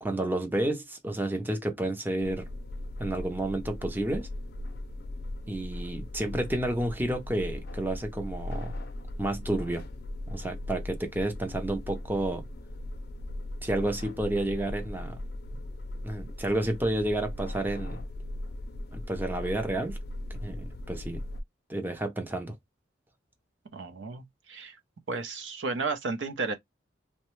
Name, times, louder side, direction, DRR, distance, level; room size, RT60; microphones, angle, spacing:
voice 1, 0.0-2.5 3.0-4.3 5.5-8.7 9.2-9.8 10.3-12.4 13.6-15.2 16.0-18.0 18.9-20.0 20.4-21.2 21.7-22.6, right 1 dB, 10° right, 0.5 m, -30 dB
sound 1, 2.2-21.4, left 1 dB, 60° left, 0.5 m, -38 dB
voice 2, 23.7-24.8 25.1-26.5, right 3 dB, 75° right, 0.6 m, -33 dB
2.8 x 2.1 x 3.0 m
head